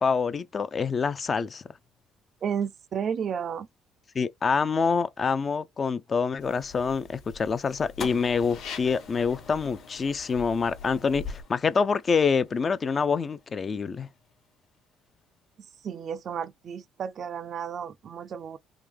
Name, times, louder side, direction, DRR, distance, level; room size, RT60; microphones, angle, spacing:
voice 1, 0.0-1.6 4.1-14.1, left 5 dB, 30° left, 0.3 m, -26 dB
voice 2, 2.4-3.7 15.8-18.6, right 7 dB, 50° right, 0.3 m, -32 dB
sound 1, 6.4-11.4, left 5 dB, 75° left, 1.2 m, -43 dB
sound 2, 8.0-14.3, left 6 dB, 50° left, 0.9 m, -46 dB
3.5 x 2.7 x 3.2 m
cardioid pair, 120°, 0 cm